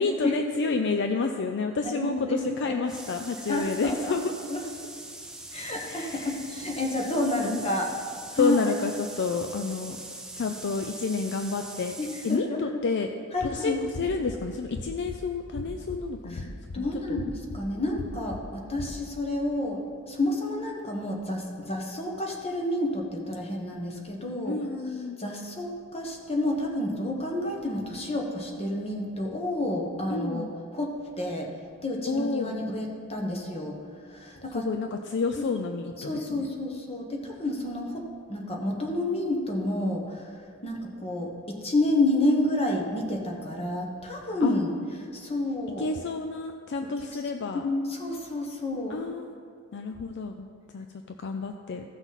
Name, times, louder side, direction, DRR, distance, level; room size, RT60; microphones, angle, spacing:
voice 1, 0.0-4.3 5.8-6.3 7.4-7.6 8.4-10.0 10.4-12.0 12.2-13.1 13.4-16.5 16.8-17.2 24.5-25.2 30.1-30.5 32.1-32.6 34.5-36.5 44.4-44.5 45.8-47.7 48.9-49.3 49.7-50.5 50.7-50.9 51.2-51.8, left 4 dB, 55° left, 5 dB, 0.4 m, -30 dB
voice 2, 1.8-2.8 3.5-4.2 4.5-4.6 5.5-7.9 8.3-8.6 12.0-12.8 13.3-13.8 16.3-16.4 16.7-24.6 25.2-31.5 31.8-33.8 34.1-34.7 36.0-40.3 40.6-44.7 45.1-45.9 47.5-49.0, left 1 dB, 25° left, 0 dB, 1.2 m, -29 dB
sound 1, 2.9-12.4, right 2 dB, 5° right, 0.6 m, -42 dB
sound 2, 13.9-14.4 14.7-15.2 15.6-16.0 16.4-16.8 17.2-17.6 18.0-18.4 18.8-19.0, left 2 dB, 90° left, 0.8 m, -37 dB
15.0 x 6.0 x 4.1 m, 2.2 s
head